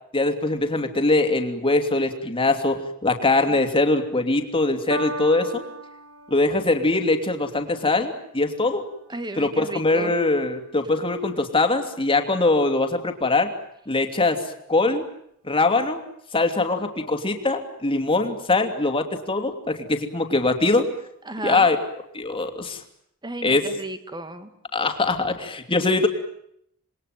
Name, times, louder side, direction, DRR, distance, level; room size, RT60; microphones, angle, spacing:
voice 1, 0.1-5.6 6.3-8.8 9.4-13.5 13.9-14.4 14.7-15.0 15.4-16.0 16.3-20.9 21.4-21.8 22.1-22.8 23.4-23.6 24.7-26.1, left 2 dB, 25° left, 6 dB, 2.9 m, -22 dB
Piano, 4.9-11.5 12.3-12.4, right 2 dB, 75° right, 2.6 m, -39 dB
voice 2, 9.1-10.1 21.2-21.7 23.2-24.5, right 2 dB, 20° right, 10 dB, 2.2 m, -34 dB
27.5 x 21.5 x 9.2 m, 0.72 s
head